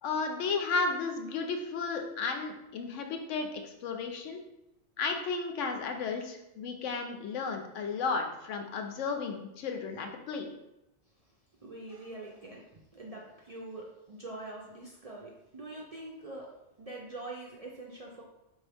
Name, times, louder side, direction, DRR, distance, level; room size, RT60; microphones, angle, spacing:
voice 1, 0.0-4.4 5.0-10.5, left 4 dB, 85° left, 4 dB, 1.0 m, -33 dB
voice 2, 11.6-18.2, right 2 dB, 50° right, -3 dB, 0.4 m, -44 dB
4.5 x 2.7 x 3.4 m, 0.92 s
omnidirectional pair, 1.2 m